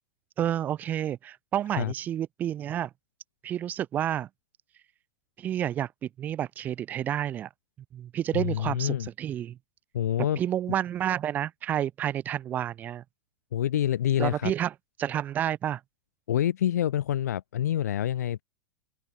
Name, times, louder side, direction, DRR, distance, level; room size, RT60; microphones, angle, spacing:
voice 1, 0.4-2.9 3.4-4.3 5.4-7.5 7.9-9.6 10.4-13.0 14.2-14.7 15.0-15.8, right 11 dB, 20° right, 0.5 m, -30 dB
voice 2, 8.3-9.1 9.9-10.4 13.5-14.5 16.3-18.4, left 11 dB, 90° left, 1.5 m, -27 dB
supercardioid pair, 155°, 9 cm